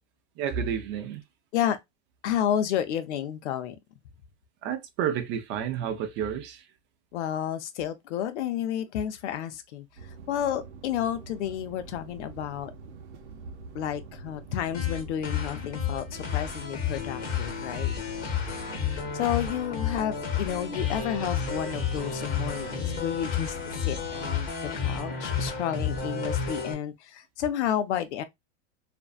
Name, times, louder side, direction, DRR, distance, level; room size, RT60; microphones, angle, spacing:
voice 1, 0.4-1.2 4.6-6.6, right 8 dB, 35° right, 0.5 m, -30 dB
voice 2, 2.2-3.8 7.1-9.9 10.3-12.7 13.7-17.9 19.1-28.2, left 10 dB, 80° left, 0.6 m, -31 dB
sound 1, 10.0-24.4, right 4 dB, 90° right, 0.8 m, -45 dB
dreamscape alternate, 14.7-26.7, left 7 dB, 25° left, 0.8 m, -31 dB
2.6 x 2.2 x 2.4 m
supercardioid pair, 140°, 34 cm